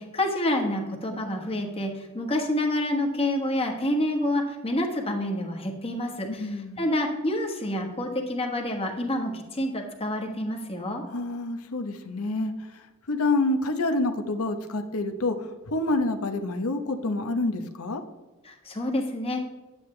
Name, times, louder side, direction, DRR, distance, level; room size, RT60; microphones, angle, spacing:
voice 1, 0.0-11.0 18.4-19.4, left 1 dB, 25° left, 2 dB, 1.3 m, -28 dB
voice 2, 6.3-6.9 11.1-12.5 13.1-18.0, left 2 dB, 70° left, 7 dB, 0.9 m, -27 dB
9.5 x 8.9 x 3.3 m, 1.2 s
head